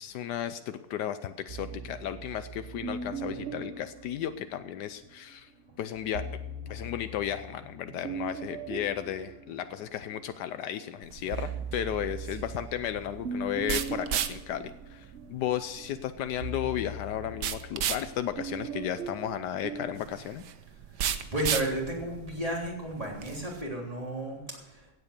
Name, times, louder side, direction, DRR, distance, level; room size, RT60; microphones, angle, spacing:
voice 1, 0.0-5.5 5.8-6.3 6.7-20.4, left 10 dB, 80° left, 11 dB, 1.2 m, -34 dB
sound 1, 1.5-5.0 6.0-10.4 10.8-20.1, right 4 dB, 50° right, 1.0 m, -40 dB
sound 2, 11.0-23.6, right 9 dB, 85° right, 1.5 m, -36 dB
voice 2, 21.0-24.8, right 1 dB, 20° right, -1 dB, 3.4 m, -33 dB
16.0 x 8.3 x 6.6 m, 1.0 s
omnidirectional pair, 1.8 m